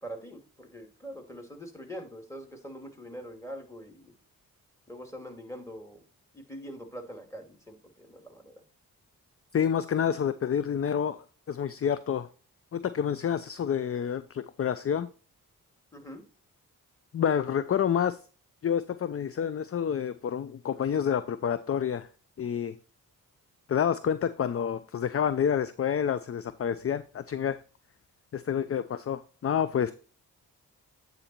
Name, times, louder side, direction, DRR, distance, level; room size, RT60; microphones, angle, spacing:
voice 1, 0.0-4.1 4.9-6.0 6.3-8.6 15.9-16.2, equal, 10° left, 2.4 m, -43 dB
voice 2, 9.5-12.3 12.7-15.1 17.1-18.2 18.6-22.1 22.4-22.7 23.7-27.6 28.3-29.9, left 8 dB, 40° left, 0.5 m, -28 dB
8.8 x 4.0 x 4.3 m
supercardioid pair, 40°, 38 cm